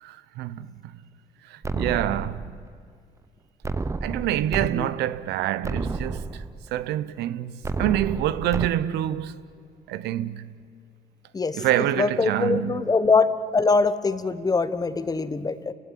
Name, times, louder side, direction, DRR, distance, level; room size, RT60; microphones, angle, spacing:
voice 1, 0.0-0.7 1.5-2.5 4.0-6.4 6.7-9.3 9.9-10.5 11.5-12.9, right 12 dB, 80° right, 0.9 m, -26 dB
sound 1, 1.6-2.7 3.6-4.7 5.1-5.2 5.6-6.7 7.6-8.7, right 3 dB, 15° right, 0.8 m, -30 dB
voice 2, 11.3-15.7, left 4 dB, 20° left, 1.1 m, -23 dB
28.5 x 16.5 x 10.0 m
cardioid pair, 110°, 17 cm